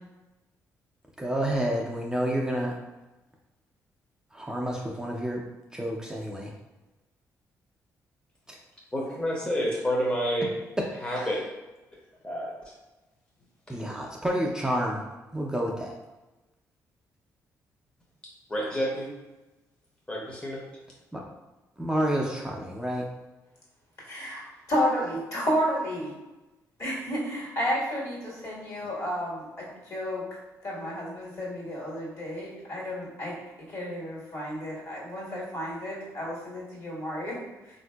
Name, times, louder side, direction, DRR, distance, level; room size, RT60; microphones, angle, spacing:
voice 1, 1.2-2.8 4.3-5.5 5.7-6.5 8.5-8.6 11.2-11.3 13.7-15.0 15.3-15.9 21.1-21.2 21.8-23.1, equal, 10° right, -2 dB, 0.4 m, -29 dB
voice 2, 8.9-10.5 11.0-11.4 12.2-12.5 18.5-19.1 20.1-20.6, equal, 15° left, -3 dB, 0.8 m, -28 dB
voice 3, 24.1-26.1 26.8-30.2 30.6-33.4 33.7-37.4, equal, 55° left, -5 dB, 1.5 m, -31 dB
3.5 x 2.6 x 2.3 m, 1.1 s
cardioid pair, 70°, 7 cm